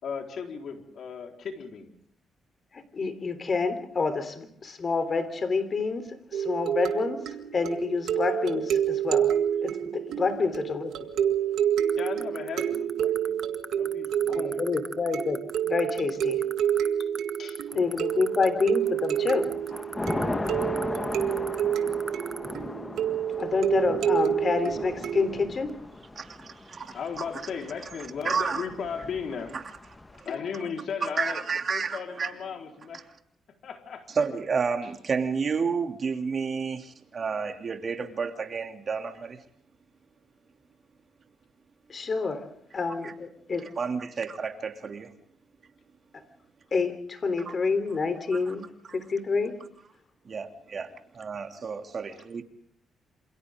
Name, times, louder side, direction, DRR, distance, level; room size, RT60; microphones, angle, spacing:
voice 1, 0.0-2.0 10.4-10.6 11.9-13.5 13.7-14.7 17.0-17.1 17.4-17.8 18.1-18.3 26.9-29.6 30.1-31.4 31.7-33.1 33.6-34.1, left 6 dB, 65° left, 4.4 m, -36 dB
voice 2, 2.7-10.9 14.4-16.5 17.7-19.5 23.4-25.8 41.9-42.5 42.7-43.7 46.1-46.2 46.7-49.6, left 4 dB, 40° left, 3.6 m, -28 dB
sound 1, 6.3-25.5, right 9 dB, 85° right, 1.9 m, -28 dB
sound 2, 11.9-22.5, right 2 dB, 15° right, 1.4 m, -38 dB
Thunder / Rain, 18.1-18.7 19.1-30.2, left 2 dB, 20° left, 1.4 m, -37 dB
voice 3, 26.2-27.2 28.2-28.7 29.5-29.6 30.2-30.3 31.0-32.3 34.1-39.4 43.0-43.1 43.8-45.1 47.5-47.6 48.5-48.6 48.9-49.0 50.2-52.4, right 5 dB, 45° right, 2.8 m, -31 dB
28.0 x 27.5 x 3.8 m
cardioid pair, 90°, 0 cm